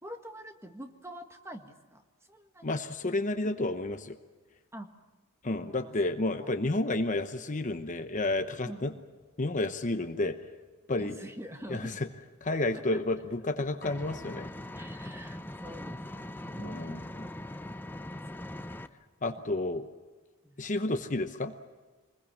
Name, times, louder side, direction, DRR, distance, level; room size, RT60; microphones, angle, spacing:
voice 1, 0.0-2.0 2.3-2.7 4.7-4.9 5.6-6.6 8.6-8.9 11.0-12.0 12.7-13.0 14.7-17.0 18.3-18.8 20.4-20.6, equal, 10° right, 5 dB, 1.7 m, -46 dB
voice 2, 2.6-4.1 5.4-8.9 9.4-10.4 10.9-11.1 11.7-12.1 12.4-14.5 16.6-17.2 19.2-19.9 20.6-21.5, left 2 dB, 35° left, 8 dB, 0.9 m, -31 dB
Engine, 13.8-18.9, left 1 dB, 10° left, 0.7 m, -41 dB
25.5 x 21.0 x 7.4 m, 1.3 s
head